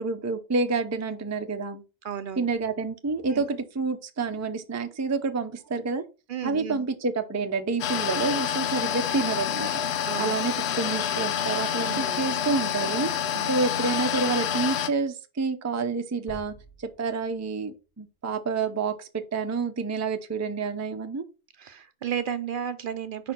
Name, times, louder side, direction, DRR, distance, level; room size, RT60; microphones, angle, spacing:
voice 1, 0.0-1.8 2.4-6.0 6.4-9.8 10.2-16.5 17.0-21.2, right 4 dB, 20° right, 0.4 m, -28 dB
voice 2, 2.0-2.5 3.3-3.4 6.3-6.9 10.0-10.4 11.8-12.4 13.2-13.5 21.6-23.3, right 8 dB, 60° right, 0.7 m, -33 dB
sound 1, 7.8-14.9, left 9 dB, 85° left, 0.9 m, -28 dB
sound 2, 16.3-18.2, equal, 60° left, 1.8 m, -49 dB
5.0 x 4.3 x 4.3 m
omnidirectional pair, 1.1 m